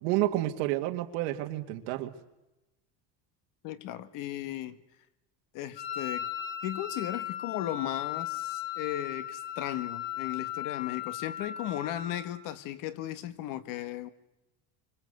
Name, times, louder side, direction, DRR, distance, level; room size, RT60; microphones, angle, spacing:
voice 1, 0.0-2.1, right 15 dB, 85° right, 2.1 m, -30 dB
voice 2, 3.6-4.8 5.5-6.3 6.6-14.1, left 13 dB, 50° left, 1.7 m, -36 dB
Wind instrument woodwind instrument, 5.8-12.4, left 11 dB, 80° left, 3.9 m, -37 dB
26.5 x 25.0 x 8.0 m
cardioid pair, 175°, 40 cm